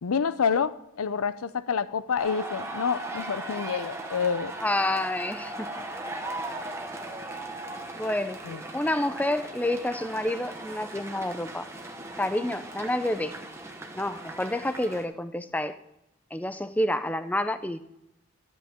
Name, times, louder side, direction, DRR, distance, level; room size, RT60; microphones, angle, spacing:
voice 1, 0.0-4.5 8.5-8.6, left 6 dB, 90° left, 16 dB, 0.5 m, -28 dB
sound 1, 2.2-15.1, right 2 dB, 10° right, 0.9 m, -38 dB
voice 2, 4.6-5.7 8.0-8.4 8.7-11.7 12.2-13.3 13.9-15.7 16.3-17.9, left 1 dB, 5° left, 11 dB, 0.4 m, -28 dB
12.5 x 8.4 x 3.6 m, 0.87 s
head